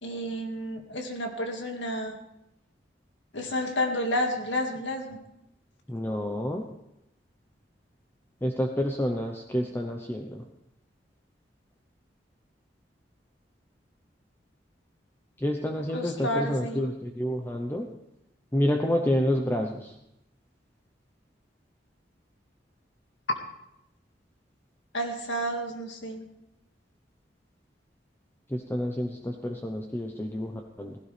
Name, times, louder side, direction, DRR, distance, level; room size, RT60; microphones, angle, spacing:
voice 1, 0.0-2.2 3.3-5.2 15.9-16.9 24.9-26.3, equal, 90° left, 3 dB, 2.1 m, -31 dB
voice 2, 5.9-6.6 8.4-10.4 15.4-17.9 18.5-19.9 28.5-31.0, equal, 15° left, 3 dB, 0.8 m, -29 dB
17.5 x 16.0 x 3.4 m, 0.85 s
head